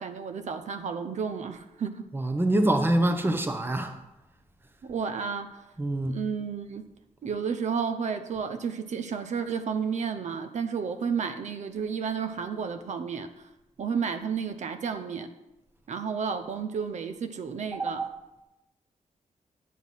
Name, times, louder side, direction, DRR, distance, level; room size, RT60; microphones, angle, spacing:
voice 1, 0.0-2.1 4.8-5.6 6.1-6.9 7.2-13.3 13.8-15.3 15.9-18.0, right 6 dB, 65° right, 0.7 m, -32 dB
voice 2, 2.1-4.0 5.8-6.2 17.7-18.1, right 1 dB, 15° right, 0.9 m, -25 dB
9.4 x 8.1 x 5.6 m
wide cardioid pair, 130°, 13 cm